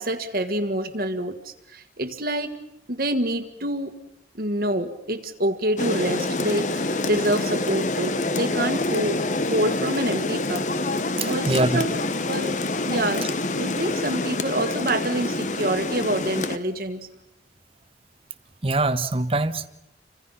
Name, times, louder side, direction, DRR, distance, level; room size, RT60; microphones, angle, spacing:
voice 1, 0.0-2.6 2.9-4.0 4.3-9.2 9.5-10.7 11.2-11.9 12.3-12.6 12.9-17.1, right 1 dB, 55° right, 1.7 m, -27 dB
Rain, 5.8-16.6, left 2 dB, 45° left, 1.1 m, -26 dB
voice 2, 11.2-11.8 18.6-19.7, right 2 dB, 30° right, 1.1 m, -23 dB
29.5 x 25.5 x 5.7 m
head